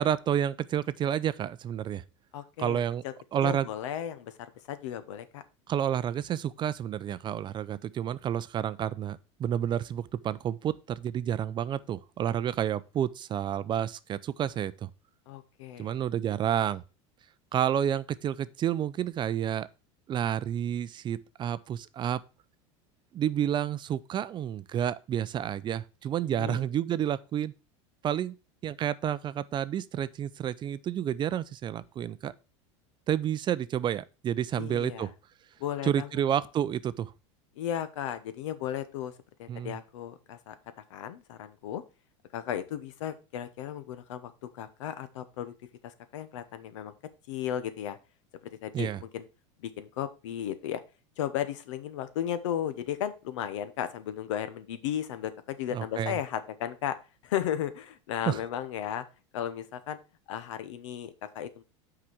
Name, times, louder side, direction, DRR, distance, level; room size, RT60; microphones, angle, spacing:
voice 1, 0.0-2.0 2.6-3.0 3.3-3.7 5.7-14.9 15.8-16.8 17.5-19.7 20.1-22.2 23.1-27.5 28.0-28.4 28.6-32.3 33.1-35.1 35.8-37.1 39.5-39.8 48.7-49.0 55.7-56.2 58.3-58.4, right 10 dB, 30° right, 0.4 m, -30 dB
voice 2, 2.3-3.1 3.4-5.4 15.3-16.0 26.3-26.6 34.6-35.1 35.6-36.2 37.6-39.1 39.4-41.8 42.3-45.5 45.8-46.9 47.3-48.0 48.6-49.2 49.6-50.8 51.2-57.0 57.2-59.0 59.3-60.0 60.3-61.6, left 10 dB, 80° left, 1.0 m, -35 dB
6.0 x 4.9 x 5.9 m
supercardioid pair, 115°, 16 cm